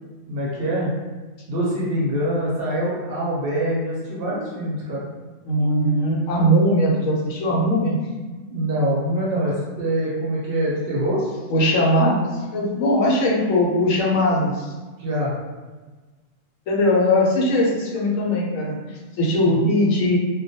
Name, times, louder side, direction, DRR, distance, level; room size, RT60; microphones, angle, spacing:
voice 1, 0.3-0.9 1.5-5.1 8.5-11.2 15.0-15.3 19.5-19.6, right 1 dB, 60° right, -6 dB, 0.7 m, -24 dB
voice 2, 5.4-8.0 11.5-14.7 16.7-20.2, left 1 dB, 90° left, -3 dB, 1.0 m, -20 dB
2.2 x 2.2 x 2.7 m, 1.3 s
omnidirectional pair, 1.4 m